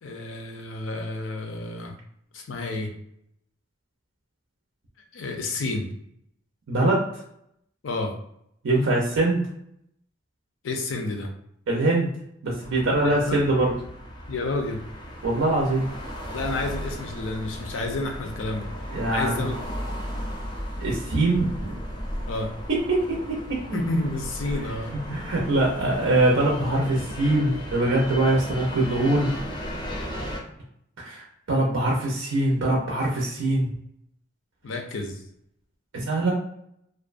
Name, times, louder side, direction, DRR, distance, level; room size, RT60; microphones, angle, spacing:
voice 1, 0.0-1.9 2.3-2.9 5.1-5.9 7.8-8.1 10.6-11.3 13.0-13.5 14.3-14.8 16.3-18.7 19.1-19.6 22.3-22.5 23.7-25.0 28.2-28.4 34.6-35.2, left 2 dB, 75° left, 3 dB, 0.5 m, -30 dB
voice 2, 6.7-7.1 8.6-9.4 11.7-12.1 12.4-13.7 15.2-15.9 18.9-19.5 20.8-21.7 22.9-23.6 25.1-29.3 31.0-31.2 31.5-33.7 35.9-36.3, right 2 dB, 80° right, -2 dB, 0.5 m, -23 dB
sound 1, 12.6-30.4, equal, 25° left, 0.5 m, -35 dB
2.4 x 2.1 x 2.4 m, 0.74 s
head